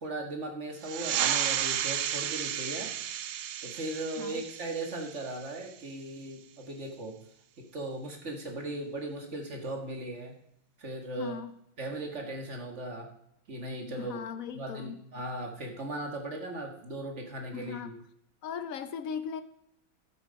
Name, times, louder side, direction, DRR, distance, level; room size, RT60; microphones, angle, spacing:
voice 1, 0.0-2.9 3.6-7.2 7.6-10.3 10.8-11.4 11.8-13.1 13.5-14.2 14.5-17.9, right 2 dB, 35° right, 2 dB, 1.7 m, -38 dB
sound 1, 0.8-5.9, right 10 dB, 90° right, 1.6 m, -33 dB
voice 2, 11.2-11.5 14.0-15.0 17.5-18.0 18.4-19.4, left 7 dB, 70° left, 10 dB, 0.8 m, -38 dB
12.0 x 8.2 x 5.1 m, 0.76 s
omnidirectional pair, 2.3 m